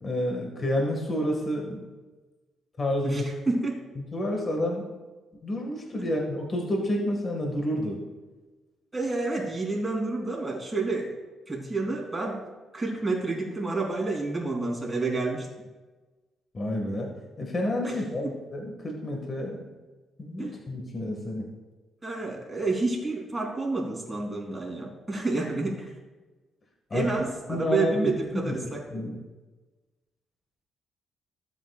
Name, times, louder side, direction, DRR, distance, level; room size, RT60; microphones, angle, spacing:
voice 1, 0.0-1.8 2.8-3.2 4.1-4.8 5.4-8.0 16.5-17.1 17.4-19.6 20.2-21.5 26.9-27.1 27.5-28.6 28.9-29.2, left 1 dB, 35° left, 0 dB, 1.7 m, -29 dB
voice 2, 3.0-3.8 6.0-6.1 8.9-11.1 11.5-12.4 12.7-15.5 17.8-18.0 18.2-18.4 20.4-20.5 22.0-25.9 26.9-29.0, right 3 dB, 15° right, -2 dB, 3.2 m, -29 dB
15.5 x 8.0 x 2.4 m, 1.2 s
cardioid pair, 90°, 0 cm